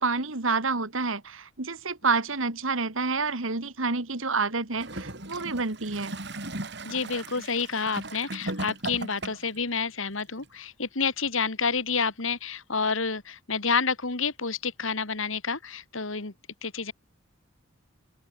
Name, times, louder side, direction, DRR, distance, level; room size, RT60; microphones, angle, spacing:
voice 1, 0.0-6.2, right 4 dB, 75° right, 2.2 m, -28 dB
Gurgling / Toilet flush, 4.7-9.6 10.4-10.5, right 2 dB, 55° right, 5.1 m, -37 dB
voice 2, 6.8-16.3 16.6-16.9, left 5 dB, 75° left, 2.4 m, -29 dB
open air
head